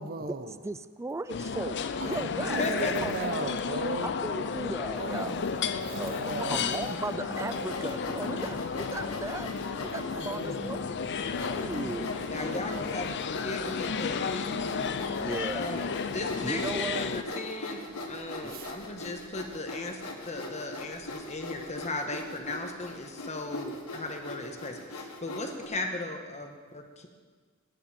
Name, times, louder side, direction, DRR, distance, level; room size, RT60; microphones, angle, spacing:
voice 1, 0.0-0.6 2.0-4.2 4.9-7.1 10.1-13.2 18.5-18.8, right 3 dB, 45° right, 9 dB, 0.8 m, -39 dB
voice 2, 0.6-2.6 3.0-3.1 4.2-5.4 5.8-6.1 6.5-10.8 11.5-12.1 15.2-15.7 16.4-17.0 18.4-18.6, right 2 dB, 15° right, 14 dB, 0.3 m, -36 dB
sound 1, 1.3-17.2, left 5 dB, 55° left, 0.6 m, -33 dB
voice 3, 2.4-2.9 6.4-6.5 12.2-14.7 15.5-17.8 18.1-27.1, left 2 dB, 30° left, 4 dB, 1.3 m, -37 dB
sound 2, 5.4-5.5 6.3-12.6, equal, 70° right, 3.7 m, -46 dB
Sawing, 7.2-10.1 10.7-10.8 11.3-25.7, left 2 dB, 80° left, 1.7 m, -41 dB
16.0 x 9.9 x 4.3 m, 1.5 s
head